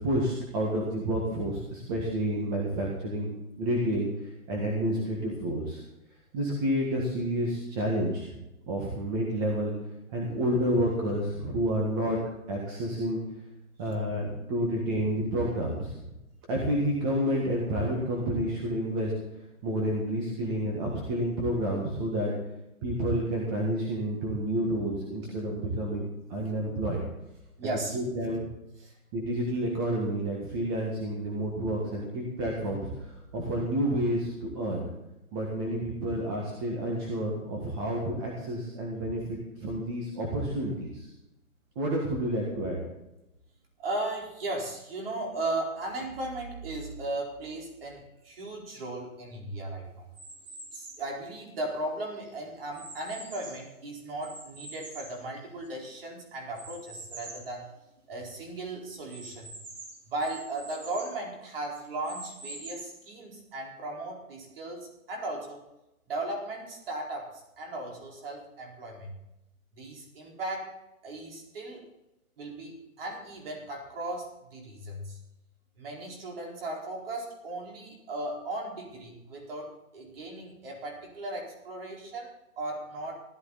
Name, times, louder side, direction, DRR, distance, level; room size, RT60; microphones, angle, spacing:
voice 1, 0.0-3.3 3.6-5.8 6.3-8.3 8.7-9.7 10.1-12.2 12.5-13.2 13.8-15.9 16.5-19.1 19.6-22.3 22.8-27.0 27.9-28.5 29.1-33.1 33.3-34.9 35.3-41.1 41.7-42.8, right 1 dB, 15° right, -2 dB, 1.7 m, -29 dB
voice 2, 27.6-28.0 28.8-28.9 43.8-50.1 50.7-57.7 58.1-59.5 60.1-65.6 66.1-69.2 69.7-70.8 71.0-71.9 72.4-75.2 75.8-83.1, right 2 dB, 40° right, 0 dB, 4.6 m, -37 dB
sound 1, 50.1-51.1 51.7-53.7 54.2-55.9 56.5-57.5 58.0-58.1 58.3-58.4 59.1-61.2 61.7-63.1, right 2 dB, 55° right, 5.7 m, -45 dB
16.5 x 13.0 x 4.1 m, 0.92 s
hypercardioid pair, 170°, 43 cm